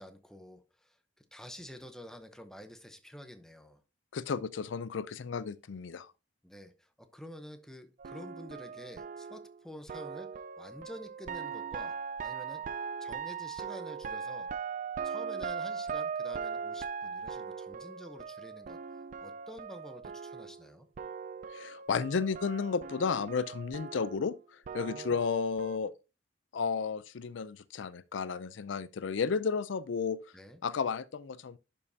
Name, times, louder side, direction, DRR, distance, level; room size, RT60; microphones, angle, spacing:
voice 1, 0.0-3.8 6.4-12.7 13.0-14.5 15.0-18.8 19.2-20.9 24.7-25.2 30.3-30.6, equal, 5° left, 0.8 m, -49 dB
voice 2, 4.1-6.1 21.5-24.3 24.7-25.9 26.5-30.2 30.6-31.6, left 5 dB, 85° left, 0.5 m, -33 dB
sound 1, 8.0-20.7 21.0-25.8, right 6 dB, 45° right, 0.3 m, -40 dB
11.0 x 5.4 x 2.8 m
head